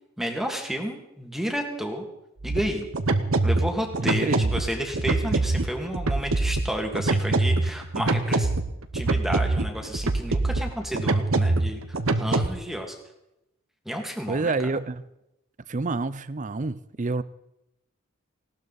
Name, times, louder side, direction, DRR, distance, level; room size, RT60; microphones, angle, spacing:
voice 1, 0.2-2.1 2.4-2.9 3.4-8.5 8.9-13.0 13.9-14.5, equal, ahead, 2 dB, 2.1 m, -31 dB
sound 1, 2.4-12.5, right 2 dB, 65° right, 1.0 m, -25 dB
voice 2, 4.0-4.5 14.3-15.0 15.7-17.2, right 3 dB, 35° right, 16 dB, 0.6 m, -28 dB
19.0 x 17.5 x 4.1 m, 0.87 s
head